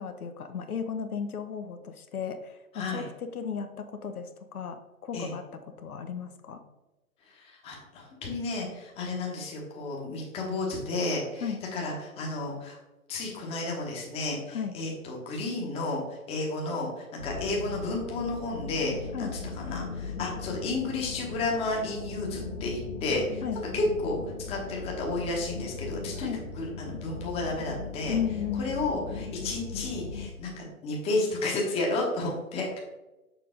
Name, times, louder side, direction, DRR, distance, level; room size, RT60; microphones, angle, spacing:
voice 1, 0.0-6.6 11.4-11.6 14.5-14.7 19.1-19.3 23.4-23.6 26.2-26.5 28.1-28.7, left 7 dB, 75° left, 7 dB, 1.0 m, -35 dB
voice 2, 7.3-12.8 13.1-19.3 19.6-23.4 23.7-24.2 24.5-28.2 28.6-32.8, left 2 dB, 15° left, -1 dB, 1.1 m, -32 dB
sound 1, 17.2-30.3, left 4 dB, 55° left, 1.5 m, -38 dB
6.7 x 5.3 x 3.7 m, 1.0 s
hypercardioid pair, 140°, 45 cm